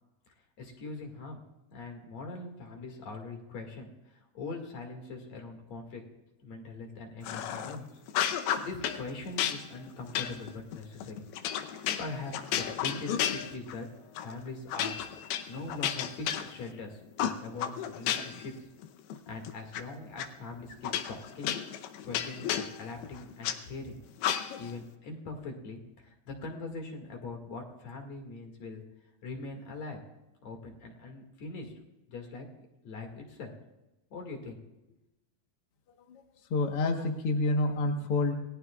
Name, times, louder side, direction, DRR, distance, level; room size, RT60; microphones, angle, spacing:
voice 1, 0.6-1.4 1.7-3.9 4.3-6.0 6.4-7.9 8.6-11.3 11.7-13.9 14.2-15.0 15.5-18.5 19.3-21.6 22.0-24.0 24.6-28.8 29.2-30.0 30.4-31.7 32.1-32.5 32.8-33.5 34.1-34.7, left 3 dB, 50° left, 2 dB, 3.0 m, -42 dB
sound 1, 7.2-7.8 8.1-9.0 9.4-13.8 14.2-14.3 14.7-16.8 17.2-18.5 18.8-19.8 20.2-20.3 20.8-23.6 24.2-24.7, left 10 dB, 85° left, 2.8 m, -33 dB
voice 2, 36.5-38.3, left 2 dB, 70° left, 3 dB, 1.3 m, -28 dB
28.5 x 19.0 x 2.4 m, 0.97 s
omnidirectional pair, 4.4 m